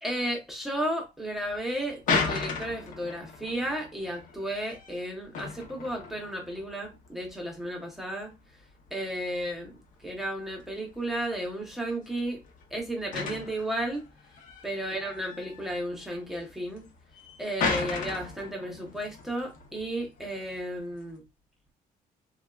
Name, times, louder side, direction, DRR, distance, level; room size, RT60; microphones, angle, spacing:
voice 1, 0.0-8.3 8.9-9.7 10.0-12.4 12.7-14.0 14.6-16.8 17.4-21.2, right 1 dB, ahead, 0.8 m, -33 dB
sound 1, 1.4-21.2, left 4 dB, 65° left, 0.7 m, -37 dB
3.4 x 2.2 x 2.3 m
cardioid pair, 165°, 15 cm